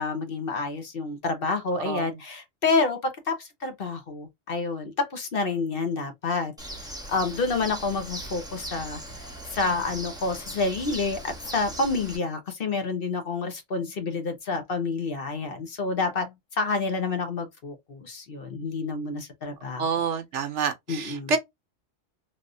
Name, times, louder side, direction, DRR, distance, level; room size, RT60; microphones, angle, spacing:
voice 1, 0.0-6.5 7.1-9.0 9.5-19.9 20.9-21.4, left 3 dB, 50° left, 0.9 m, -28 dB
Bird, 6.6-12.2, right 1 dB, 5° right, 0.8 m, -39 dB
voice 2, 19.8-21.4, right 5 dB, 70° right, 1.0 m, -27 dB
3.3 x 2.5 x 2.5 m
omnidirectional pair, 1.3 m